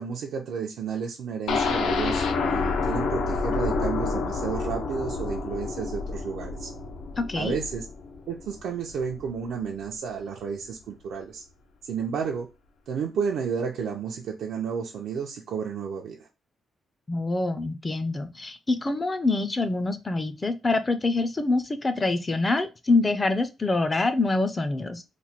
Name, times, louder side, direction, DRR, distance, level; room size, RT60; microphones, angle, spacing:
voice 1, 0.0-6.7 7.3-7.8 8.3-11.4 11.8-12.5 12.9-16.3, right 6 dB, 85° right, 0 dB, 0.5 m, -32 dB
sound 1, 1.5-9.3 9.7-9.8 10.2-10.3, left 4 dB, 85° left, 0.5 m, -28 dB
voice 2, 7.2-7.6 17.1-25.0, left 3 dB, 20° left, 10 dB, 0.3 m, -25 dB
3.0 x 2.2 x 4.1 m, 0.27 s
wide cardioid pair, 170°, 0 cm